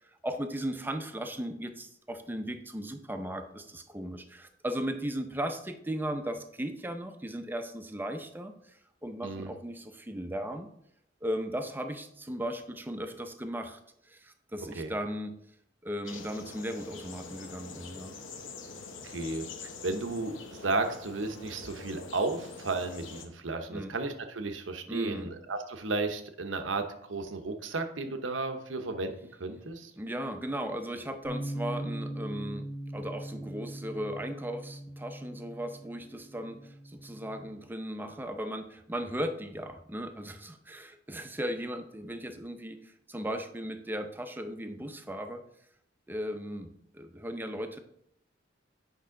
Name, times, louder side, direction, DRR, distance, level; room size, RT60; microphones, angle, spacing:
voice 1, 0.0-10.7 11.2-13.8 14.0-15.4 15.8-18.2 23.7-23.9 24.9-25.3 30.0-45.4 46.1-47.8, equal, 10° right, 7 dB, 0.6 m, -37 dB
sound 1, 16.0-23.3, left 4 dB, 85° left, 0.9 m, -45 dB
voice 2, 19.0-29.1 29.4-29.9, right 3 dB, 90° right, 7 dB, 0.9 m, -34 dB
Bass guitar, 31.2-37.5, right 1 dB, 25° left, 0.8 m, -40 dB
8.3 x 5.5 x 3.8 m, 0.73 s
head